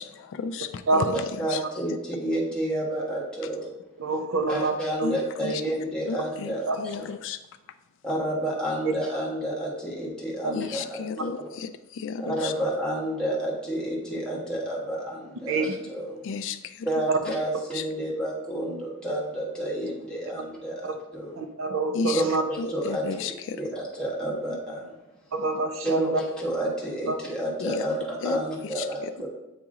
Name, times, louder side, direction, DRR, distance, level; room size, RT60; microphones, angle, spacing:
voice 1, 0.0-1.6 5.0-5.6 6.1-7.4 10.5-12.5 16.2-16.9 17.7-17.8 21.9-22.2 22.6-23.6 27.6-27.9 28.2-28.4 28.6-29.1, left 5 dB, 60° left, 10 dB, 0.3 m, -33 dB
voice 2, 1.1-3.7 4.4-7.1 8.0-11.0 11.4-11.5 12.2-16.2 16.8-21.4 22.1-24.9 25.8-29.3, right 1 dB, 5° left, -5 dB, 1.3 m, -30 dB
voice 3, 4.0-4.7 6.7-6.8 15.5-15.7 21.4-22.4 25.3-26.2 27.1-27.2, right 3 dB, 60° right, 5 dB, 0.6 m, -26 dB
8.6 x 3.0 x 3.7 m, 1.0 s
head